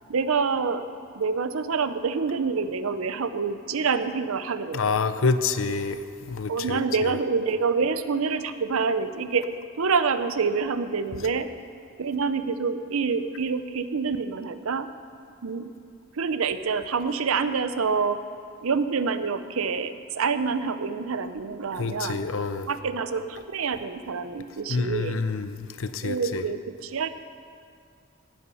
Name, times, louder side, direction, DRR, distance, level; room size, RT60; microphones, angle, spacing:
voice 1, 0.1-0.8 1.1-5.0 6.5-9.5 9.8-11.5 12.0-14.9 15.4-15.7 16.2-18.2 18.6-22.2 22.7-25.2 26.0-27.1, right 5 dB, 80° right, 11 dB, 0.6 m, -27 dB
voice 2, 4.7-6.0 6.3-7.2 21.8-22.7 24.7-26.4, left 4 dB, 70° left, 11 dB, 0.6 m, -27 dB
18.0 x 8.5 x 5.5 m, 2.3 s
head